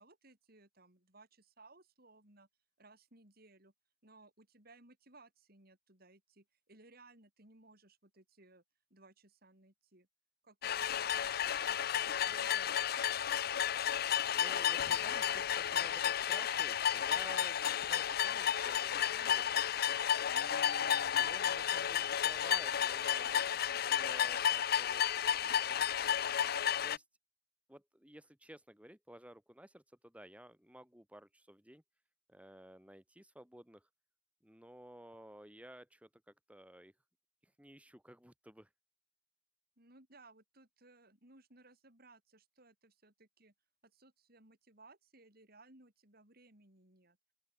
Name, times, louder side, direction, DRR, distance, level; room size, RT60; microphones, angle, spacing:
voice 1, 0.0-2.5 2.8-3.7 4.0-8.6 8.9-10.1 10.4-11.2 11.6-12.9 39.8-43.5 43.8-47.2, right 2 dB, 50° right, 7.9 m, -62 dB
sound 1, 10.6-27.0, left 9 dB, 50° left, 0.5 m, -32 dB
voice 2, 14.3-19.5 20.2-26.2 26.8-27.0 27.7-31.8 32.3-33.9 34.4-36.9 37.4-38.7, right 1 dB, 5° right, 3.4 m, -54 dB
open air
head